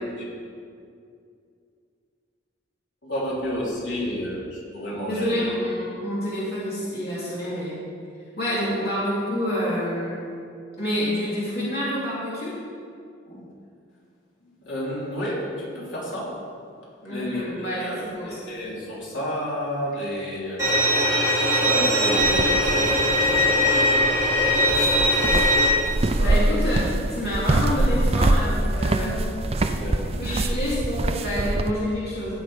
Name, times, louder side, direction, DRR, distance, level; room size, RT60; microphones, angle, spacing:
voice 1, 3.0-5.4 8.5-8.7 13.3-13.5 14.6-16.3 17.1-21.0 21.6-24.0 24.3-24.6 26.2-26.5 29.7-30.5, equal, 75° left, -6 dB, 3.4 m, -31 dB
voice 2, 5.1-7.8 8.4-10.3 10.8-12.5 17.0-18.5 26.2-29.2 30.2-32.4, equal, 55° left, -8 dB, 2.9 m, -28 dB
Bowed string instrument, 20.6-25.7, equal, 15° right, 3.4 m, -20 dB
sound 1, 22.2-31.7, right 2 dB, 30° right, 0.5 m, -25 dB
16.0 x 6.9 x 5.0 m, 2.3 s
head